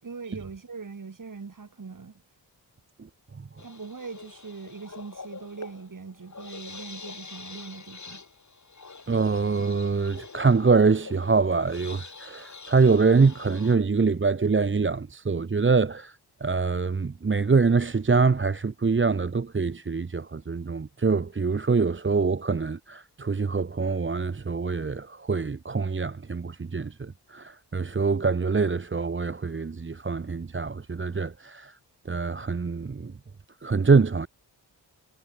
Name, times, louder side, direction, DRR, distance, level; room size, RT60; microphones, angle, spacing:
voice 1, 0.0-2.2 3.6-8.2, right 4 dB, 45° right, 5.7 m, -41 dB
sound 1, 3.6-13.8, left 4 dB, 40° left, 5.7 m, -45 dB
voice 2, 9.1-16.1 16.4-31.7 32.1-33.1 33.6-34.3, right 4 dB, 30° right, 1.1 m, -24 dB
cardioid pair, 60°, 42 cm